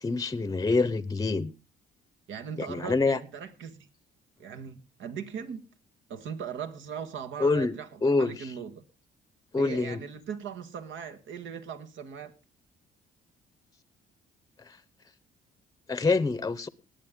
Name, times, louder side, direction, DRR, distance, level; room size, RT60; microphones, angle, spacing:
voice 1, 0.0-1.5 2.7-3.2 7.4-7.8 8.0-8.5 9.5-10.0 15.9-16.7, left 3 dB, 15° left, 0.8 m, -26 dB
voice 2, 2.3-3.9 4.4-5.7 6.1-8.8 9.6-12.3, right 7 dB, 75° right, 1.5 m, -39 dB
20.0 x 8.5 x 3.7 m
cardioid pair, 90°, 20 cm